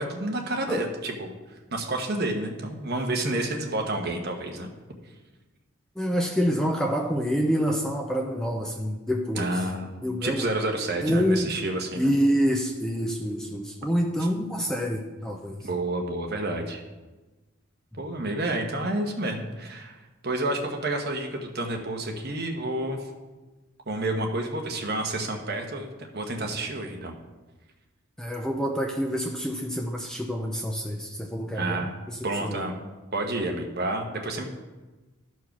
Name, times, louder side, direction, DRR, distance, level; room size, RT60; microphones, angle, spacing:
voice 1, 0.0-1.3 1.7-4.7 9.3-12.1 15.6-16.8 18.0-23.1 23.9-27.1 31.5-31.9 32.2-32.7 33.1-34.5, right 2 dB, 45° right, 2 dB, 1.2 m, -29 dB
voice 2, 6.0-9.7 10.0-10.5 11.0-11.5 12.0-15.7 28.2-32.7, equal, 5° left, 1 dB, 0.5 m, -27 dB
13.0 x 4.7 x 5.9 m, 1.2 s
head